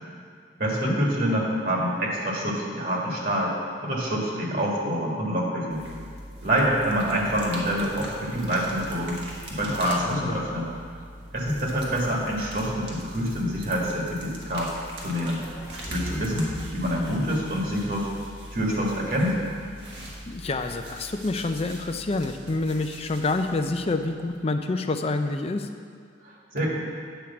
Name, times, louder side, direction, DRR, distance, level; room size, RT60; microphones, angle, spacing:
voice 1, 0.6-3.5 3.8-5.8 6.4-9.2 9.5-10.7 11.3-14.7 15.0-15.4 15.9-18.1 18.5-19.3 26.2-26.7, equal, 50° right, -3 dB, 1.8 m, -26 dB
sound 1, 5.7-24.6, right 1 dB, 65° right, 1.6 m, -42 dB
voice 2, 9.7-10.4 17.1-17.2 20.3-25.7, left 2 dB, 35° left, 7 dB, 0.5 m, -28 dB
sound 2, 15.0-17.2, equal, 10° right, 1.3 m, -40 dB
9.1 x 4.9 x 7.0 m, 2.1 s
head